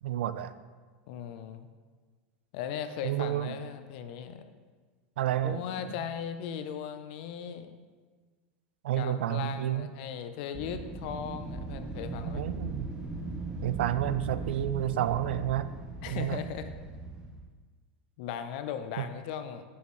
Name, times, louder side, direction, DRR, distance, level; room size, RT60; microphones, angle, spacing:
voice 1, 0.0-0.5 3.0-3.6 5.2-5.6 8.8-9.9 12.3-12.9 13.6-15.7 16.1-16.4 19.0-19.1, right 12 dB, 90° right, 14 dB, 0.3 m, -30 dB
voice 2, 1.1-1.7 2.5-4.4 5.4-7.8 8.9-12.5 16.0-16.7 18.2-19.6, left 8 dB, 60° left, 9 dB, 0.5 m, -38 dB
Wind, 10.5-17.5, right 3 dB, 10° right, 0.6 m, -38 dB
6.4 x 5.7 x 3.1 m, 1.4 s
supercardioid pair, 135°, 6 cm